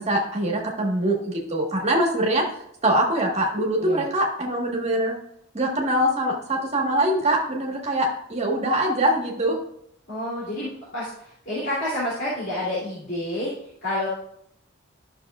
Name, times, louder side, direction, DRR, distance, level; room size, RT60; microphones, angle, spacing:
voice 1, 0.0-2.4 2.8-5.1 5.5-9.6, right 1 dB, 30° right, -1 dB, 1.4 m, -23 dB
voice 2, 10.1-13.5 13.8-14.1, left 1 dB, 60° left, -9 dB, 2.8 m, -29 dB
11.5 x 6.3 x 2.4 m, 0.72 s
head